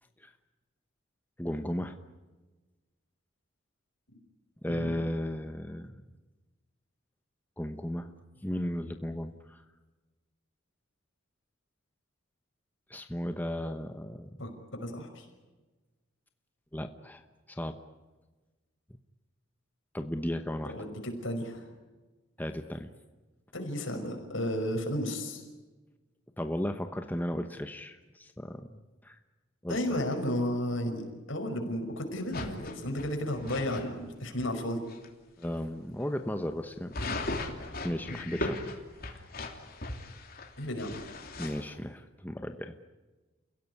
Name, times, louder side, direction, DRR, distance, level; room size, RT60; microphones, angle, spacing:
voice 1, 1.4-2.0 4.6-6.0 7.6-8.1 8.4-9.6 12.9-14.3 16.7-17.2 17.5-17.9 19.9-20.7 22.4-22.9 26.4-29.2 29.6-30.0 35.4-37.0 37.8-38.6 39.0-39.2 41.4-42.8, equal, 10° left, 7 dB, 1.0 m, -35 dB
voice 2, 4.7-5.0 14.4-15.3 20.7-21.6 23.5-25.4 29.7-34.8 40.6-41.0, left 1 dB, 70° left, 4 dB, 5.7 m, -33 dB
sound 1, 32.3-33.8 34.4-34.5 34.9-35.1 35.4-35.6 36.9-41.6, left 2 dB, 45° left, 3.1 m, -37 dB
30.0 x 17.0 x 9.7 m, 1.2 s
head